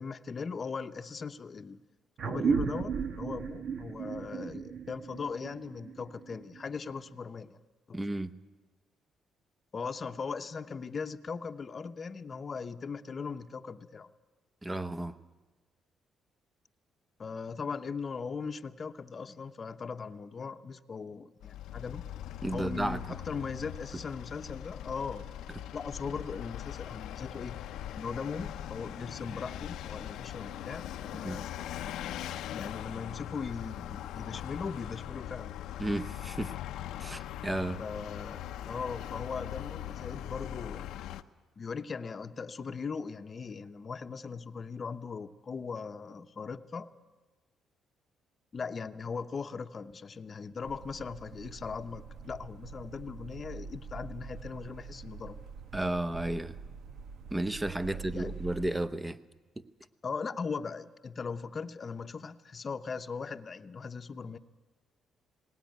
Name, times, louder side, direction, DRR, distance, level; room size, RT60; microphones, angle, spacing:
voice 1, 0.0-1.8 2.3-7.6 7.9-8.0 9.7-14.1 17.2-22.0 22.5-25.3 25.7-27.6 28.0-31.5 31.8-32.2 32.5-35.6 37.8-40.9 41.6-46.9 48.5-55.4 57.9-58.4 60.0-64.4, left 5 dB, 40° left, 9 dB, 0.8 m, -39 dB
sound 1, 2.2-7.1, right 7 dB, 60° right, 1.1 m, -35 dB
voice 2, 7.9-8.3 14.6-15.1 22.4-23.0 31.2-31.4 35.8-36.5 37.0-37.8 55.7-56.6 57.3-59.2, right 1 dB, 15° right, 13 dB, 0.8 m, -33 dB
Vehicle, 21.4-41.2, left 12 dB, 85° left, 0.7 m, -41 dB
sound 2, 50.6-58.7, right 5 dB, 80° right, 1.3 m, -45 dB
18.5 x 18.5 x 9.3 m, 1.2 s
cardioid pair, 90°, 0 cm